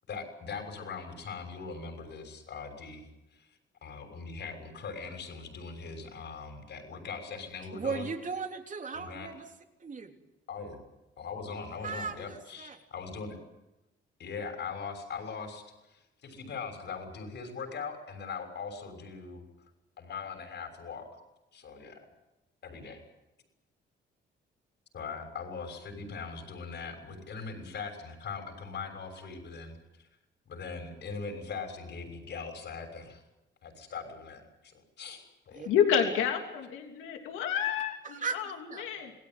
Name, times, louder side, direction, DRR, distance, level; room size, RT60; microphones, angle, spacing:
voice 1, 0.1-3.0 3.3-3.5 3.8-8.1 8.9-9.3 10.5-10.8 11.2-13.4 14.2-15.6 15.9-19.4 20.0-21.2 21.5-22.0 22.6-23.0 24.9-30.1 30.5-33.2 33.6-35.7, left 5 dB, 60° left, 6 dB, 6.5 m, -41 dB
voice 2, 7.7-9.5 9.8-10.1 11.8-12.8 35.5-35.7 38.0-39.1, right 5 dB, 40° right, 4 dB, 3.4 m, -37 dB
voice 3, 35.6-39.1, left 8 dB, 90° left, 3 dB, 3.2 m, -29 dB
27.0 x 17.5 x 9.4 m, 0.95 s
cardioid pair, 90°, 20 cm